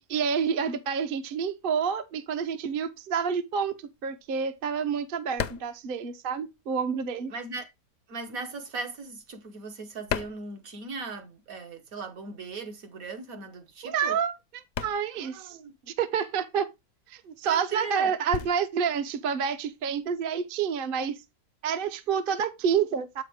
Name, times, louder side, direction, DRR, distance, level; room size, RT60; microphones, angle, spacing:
voice 1, 0.0-3.7 4.0-7.3 13.8-14.3 14.8-15.6 15.9-16.7 17.1-21.2 21.6-23.2, right 7 dB, 45° right, 0.8 m, -28 dB
sound 1, 3.8-6.9 7.2-11.3 11.6-20.3, left 8 dB, 65° left, 0.9 m, -39 dB
voice 2, 7.3-7.7 8.1-14.2 15.2-15.7 17.4-18.1, right 4 dB, 65° right, 1.7 m, -38 dB
7.7 x 5.7 x 3.5 m
omnidirectional pair, 1.6 m